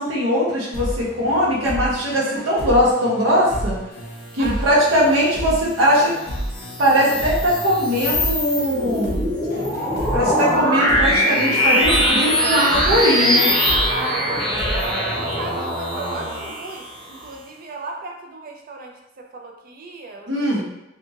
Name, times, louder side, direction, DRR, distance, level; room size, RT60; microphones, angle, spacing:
voice 1, 0.0-3.8 4.3-6.1 6.8-9.2 10.1-13.5 20.3-20.6, equal, 85° right, -5 dB, 0.8 m, -20 dB
sound 1, 0.7-16.2, equal, 50° left, 0.6 m, -32 dB
voice 2, 4.4-4.8 13.9-15.0 15.4-20.6, right 3 dB, 45° right, 2 dB, 0.4 m, -35 dB
sound 2, 6.3-17.2, equal, 25° left, 0.8 m, -22 dB
sound 3, 11.6-16.5, equal, 10° right, 1.0 m, -28 dB
2.6 x 2.4 x 2.7 m, 0.91 s
head